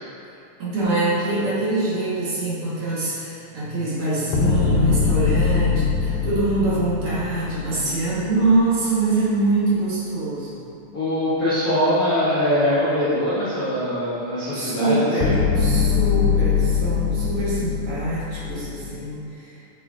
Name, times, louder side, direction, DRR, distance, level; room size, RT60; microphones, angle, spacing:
voice 1, 0.6-10.6 14.5-19.2, right 2 dB, 55° right, -8 dB, 2.1 m, -24 dB
sound 1, 4.3-8.6 15.2-19.0, left 6 dB, 80° left, 2.0 m, -22 dB
voice 2, 7.6-8.0 10.9-15.4, left 1 dB, 55° left, -12 dB, 1.0 m, -23 dB
6.4 x 5.2 x 3.6 m, 2.7 s
omnidirectional pair, 3.5 m